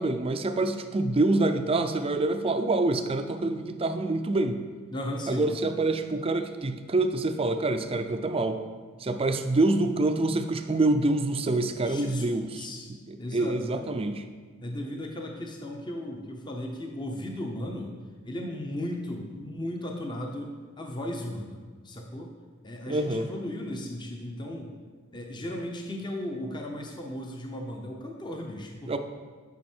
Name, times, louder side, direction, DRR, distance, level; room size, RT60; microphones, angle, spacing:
voice 1, 0.0-4.6 5.3-8.6 9.0-12.4 13.1-14.2 22.9-23.3 28.9-29.0, right 2 dB, 25° right, 7 dB, 0.5 m, -26 dB
voice 2, 4.9-5.5 11.8-12.9 13.2-13.9 14.6-17.9 18.2-22.3 22.6-24.7 25.1-29.0, left 1 dB, 20° left, 2 dB, 0.7 m, -36 dB
9.3 x 5.3 x 4.4 m, 1.5 s
head